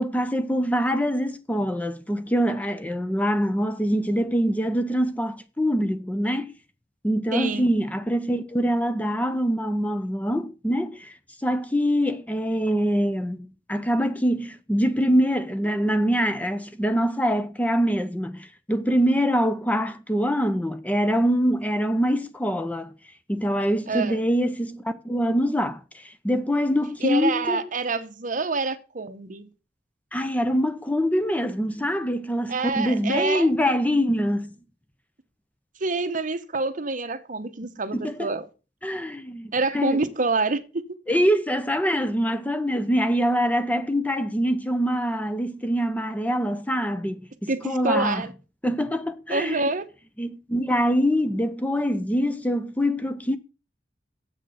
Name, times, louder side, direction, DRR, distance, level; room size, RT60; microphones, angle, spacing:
voice 1, 0.0-6.5 7.0-11.1 11.4-22.9 23.3-27.7 30.1-34.5 37.9-38.3 38.8-40.0 41.1-48.3 48.6-49.7 50.2-53.4, equal, 10° left, 0.6 m, -24 dB
voice 2, 7.3-7.7 23.9-24.2 27.0-29.5 32.5-33.5 35.8-38.5 39.5-40.6 47.5-48.3 49.3-49.9, right 3 dB, 45° right, 0.9 m, -26 dB
7.7 x 6.4 x 6.4 m
head